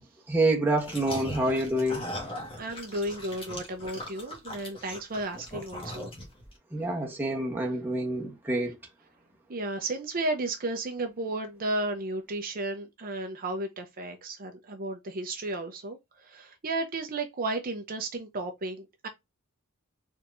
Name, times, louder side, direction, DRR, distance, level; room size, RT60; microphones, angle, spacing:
voice 1, 0.3-2.0 6.7-8.8, right 1 dB, 10° right, 1.0 m, -27 dB
sound 1, 0.8-6.5, left 1 dB, 25° left, 1.5 m, -39 dB
voice 2, 2.6-6.1 9.5-19.1, right 2 dB, 40° right, 0.7 m, -33 dB
4.3 x 3.5 x 2.6 m
head